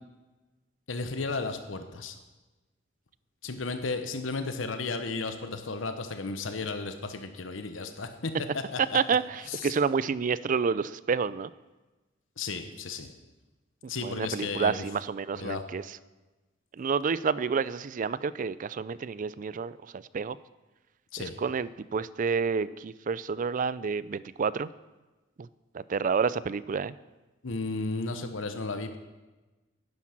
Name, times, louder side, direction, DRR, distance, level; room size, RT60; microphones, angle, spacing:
voice 1, 0.9-2.2 3.4-9.2 9.5-9.7 12.4-13.1 13.9-14.8 15.4-15.6 21.1-21.4 27.4-29.0, left 3 dB, 80° left, 8 dB, 1.0 m, -34 dB
voice 2, 8.9-11.5 14.0-15.8 16.8-20.4 21.2-24.7 25.4-25.5 25.7-26.9, right 5 dB, 45° right, 18 dB, 0.4 m, -29 dB
10.5 x 9.9 x 5.9 m, 1.1 s
head